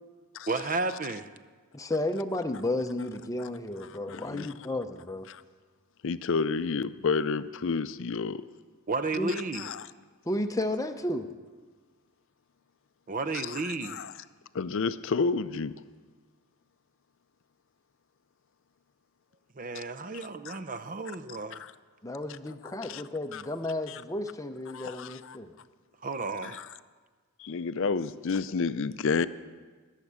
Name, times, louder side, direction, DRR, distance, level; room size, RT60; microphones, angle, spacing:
voice 1, 0.5-1.3 8.9-9.7 13.1-14.1 19.6-21.6 26.0-26.6, right 3 dB, 35° right, 11 dB, 0.7 m, -32 dB
voice 2, 1.7-5.3 9.1-9.3 10.3-11.3 22.0-25.5, left 1 dB, 15° left, 7 dB, 0.6 m, -32 dB
voice 3, 4.1-4.5 5.3-5.4 6.0-8.4 9.6-9.8 13.5-13.6 13.9-14.1 14.5-15.7 20.5-20.6 21.5-21.7 22.8-23.0 23.3-23.4 23.9-24.0 24.7-25.4 26.4-26.7 27.4-29.3, left 4 dB, 60° left, 15 dB, 0.5 m, -30 dB
20.5 x 7.4 x 8.1 m, 1.4 s
head